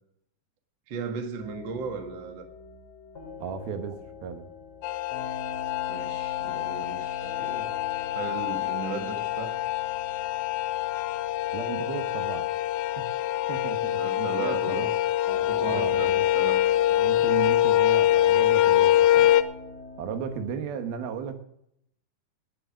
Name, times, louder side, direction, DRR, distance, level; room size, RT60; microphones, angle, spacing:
voice 1, 0.9-2.5 5.9-7.7 8.1-9.6 14.0-14.9 15.3-16.6, right 5 dB, 45° right, 5 dB, 1.6 m, -36 dB
sound 1, 1.4-20.5, left 3 dB, 30° left, 3.0 m, -45 dB
voice 2, 3.4-4.5 11.5-12.5 13.0-13.1 13.5-14.9 15.7-16.6 17.0-19.3 20.0-21.4, right 6 dB, 85° right, 7 dB, 3.2 m, -35 dB
sound 2, 4.8-19.4, left 13 dB, 80° left, 2.3 m, -25 dB
17.5 x 7.8 x 6.3 m, 0.74 s
omnidirectional pair, 4.2 m